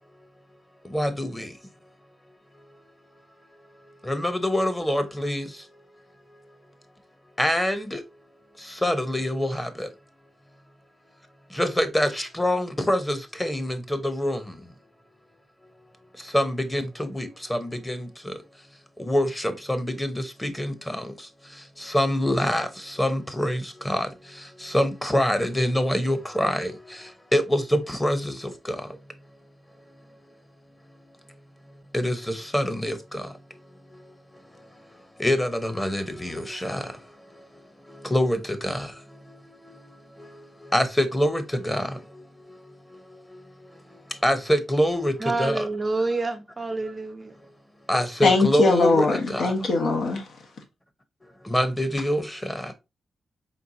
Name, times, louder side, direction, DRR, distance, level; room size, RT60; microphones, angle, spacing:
voice 1, 0.9-1.5 4.0-5.5 7.4-8.0 8.8-9.9 11.5-14.5 16.3-18.3 19.0-21.1 21.8-24.1 24.6-26.8 27.3-28.3 28.6-28.8 31.9-33.3 35.2-36.9 38.0-38.9 40.7-41.9 43.3-43.4 44.2-45.7 47.9-49.5 51.5-52.7, equal, 10° left, 0.9 m, -25 dB
voice 2, 45.2-47.4, right 3 dB, 25° right, 0.5 m, -28 dB
voice 3, 48.2-50.3, left 3 dB, 75° left, 1.3 m, -21 dB
4.5 x 3.6 x 2.7 m
cardioid pair, 80°, 0 cm